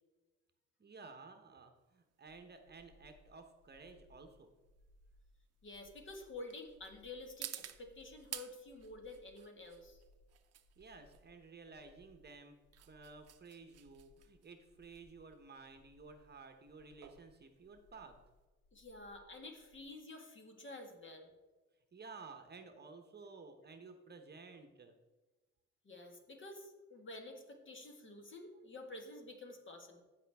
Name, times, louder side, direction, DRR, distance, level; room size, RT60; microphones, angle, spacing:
voice 1, 0.8-4.5 10.8-12.5 12.9-18.2 21.9-24.9, right 4 dB, 35° right, 6 dB, 1.0 m, -54 dB
sound 1, 1.8-18.4, right 11 dB, 55° right, 0.6 m, -54 dB
sound 2, 2.2-19.8, left 1 dB, 70° left, 1.3 m, -68 dB
voice 2, 5.6-10.0 18.7-21.3 25.8-30.0, left 2 dB, 40° left, 3 dB, 1.8 m, -50 dB
15.0 x 5.1 x 3.5 m, 1.2 s
cardioid pair, 90°, 30 cm